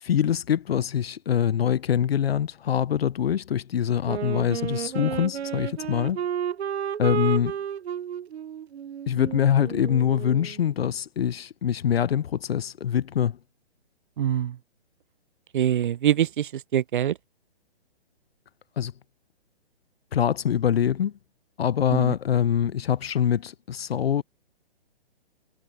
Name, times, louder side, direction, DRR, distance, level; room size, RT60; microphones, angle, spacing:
voice 1, 0.0-6.2 7.0-7.5 9.1-13.4 18.8-18.9 20.1-21.1 21.6-24.2, left 9 dB, 70° left, 0.8 m, -24 dB
Wind instrument woodwind instrument, 4.0-10.6, right 8 dB, 75° right, 0.8 m, -32 dB
voice 2, 14.2-14.6 15.5-17.2 21.9-22.1, right 10 dB, 50° right, 0.5 m, -24 dB
hypercardioid pair, 155°, 32 cm